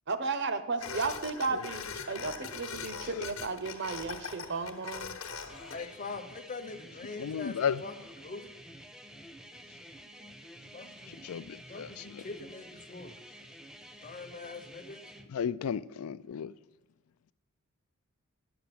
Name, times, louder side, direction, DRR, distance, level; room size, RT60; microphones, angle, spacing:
voice 1, 0.1-5.2 10.6-10.7, right 4 dB, 55° right, 0.8 m, -34 dB
sound 1, 0.8-5.8, left 5 dB, 65° left, 0.9 m, -41 dB
sound 2, 5.5-15.3, equal, 5° right, 0.6 m, -50 dB
voice 2, 5.7-7.9 8.2-8.6 10.7-11.2 11.7-13.2 14.0-15.0, left 3 dB, 35° left, 0.8 m, -43 dB
voice 3, 7.2-7.8 11.1-12.2 15.3-16.5, left 7 dB, 80° left, 0.4 m, -34 dB
10.0 x 6.0 x 6.9 m
head